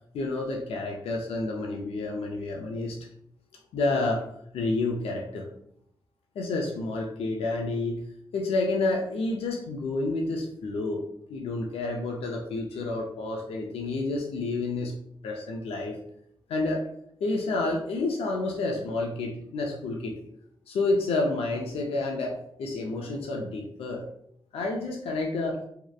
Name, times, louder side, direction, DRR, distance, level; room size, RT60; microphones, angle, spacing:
voice 1, 0.1-3.0 3.7-4.2 4.5-5.5 6.4-8.1 8.3-15.0 15.2-16.0 16.5-16.9 17.2-20.2 20.7-24.1 24.5-25.6, left 2 dB, 80° left, 0 dB, 0.4 m, -29 dB
2.7 x 2.0 x 2.3 m, 0.72 s
supercardioid pair, 45°, 10 cm